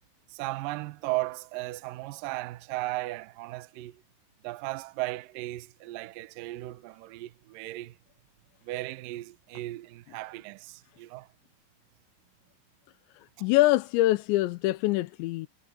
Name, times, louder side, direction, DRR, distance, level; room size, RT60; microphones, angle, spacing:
voice 1, 0.3-4.0 4.4-8.0 8.6-11.3 13.4-13.5, right 19 dB, 90° right, 1.9 m, -36 dB
voice 2, 13.4-15.5, left 17 dB, 85° left, 3.0 m, -24 dB
omnidirectional pair, 5.2 m